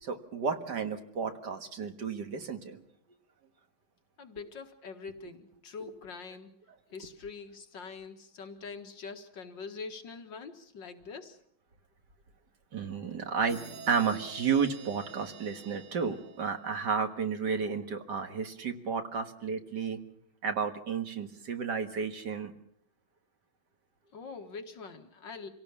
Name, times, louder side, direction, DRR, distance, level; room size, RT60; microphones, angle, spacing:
voice 1, 0.0-2.8 12.7-13.6 13.9-20.0 20.4-22.5, right 6 dB, 55° right, 7 dB, 2.1 m, -32 dB
voice 2, 4.2-6.5 6.9-11.4 24.1-25.5, left 4 dB, 60° left, 6 dB, 2.3 m, -44 dB
sound 1, 13.5-17.1, right 5 dB, 80° right, 2.8 m, -48 dB
26.0 x 17.5 x 7.2 m, 0.68 s
omnidirectional pair, 2.3 m